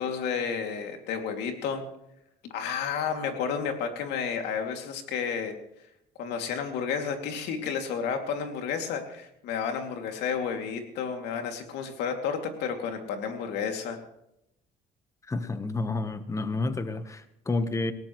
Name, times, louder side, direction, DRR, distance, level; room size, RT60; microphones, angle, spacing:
voice 1, 0.0-1.8 2.4-5.5 6.2-14.0, left 6 dB, 85° left, 4 dB, 2.6 m, -31 dB
voice 2, 15.2-17.9, left 3 dB, 20° left, 10 dB, 1.1 m, -30 dB
20.0 x 17.0 x 3.2 m, 0.81 s
cardioid pair, 110°, 17 cm